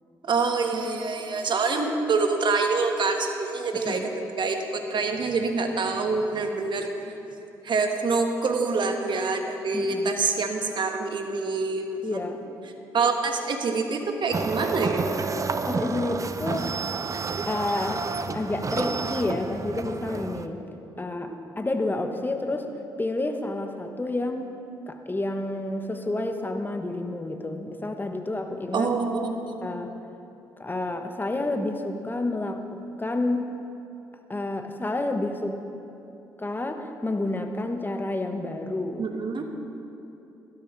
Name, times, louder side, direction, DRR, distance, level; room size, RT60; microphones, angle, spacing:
voice 1, 0.2-7.2 7.6-12.3 12.9-15.0 28.7-29.6 39.0-39.4, right 4 dB, 50° right, 4 dB, 1.4 m, -26 dB
voice 2, 3.7-4.1 9.7-10.1 12.0-12.4 15.6-16.7 17.5-18.1 18.3-20.6 21.0-22.7 23.0-24.5 24.9-28.9 29.6-29.9 30.6-33.4 34.3-35.6 36.4-39.1, left 2 dB, 20° left, 5 dB, 1.2 m, -29 dB
sound 1, 14.3-20.5, right 4 dB, 35° right, 0.6 m, -30 dB
17.0 x 12.5 x 3.2 m, 2.8 s
hypercardioid pair, 45°, 10 cm